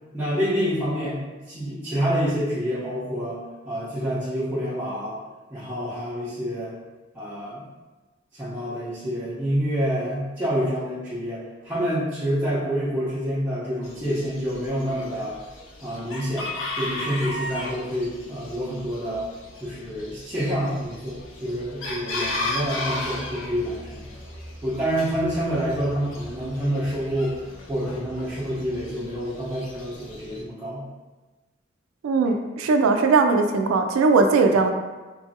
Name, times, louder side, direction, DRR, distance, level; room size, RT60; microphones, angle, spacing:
voice 1, 0.1-3.4 3.6-5.2 5.5-6.7 7.1-7.6 8.3-15.3 15.8-16.5 16.8-19.2 19.6-24.1 24.6-27.4 27.7-30.8, equal, 10° right, -12 dB, 0.6 m, -27 dB
Chicken rooster, 13.8-30.4, left 2 dB, 70° left, 0.5 m, -36 dB
voice 2, 32.0-34.7, right 4 dB, 90° right, 5 dB, 0.3 m, -19 dB
2.9 x 2.4 x 2.7 m, 1.2 s
head